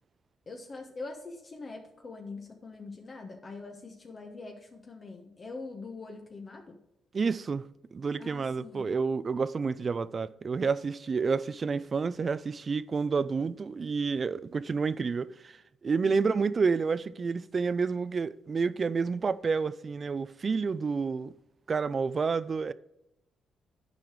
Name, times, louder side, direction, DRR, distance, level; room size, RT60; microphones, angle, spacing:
voice 1, 0.5-6.8 8.2-8.9 16.0-16.4, left 3 dB, 40° left, 1.2 m, -43 dB
voice 2, 7.1-7.6 7.9-15.5 15.8-21.3 21.7-22.7, right 5 dB, 40° right, 0.4 m, -29 dB
9.4 x 4.9 x 4.7 m
cardioid pair, 75°, 0 cm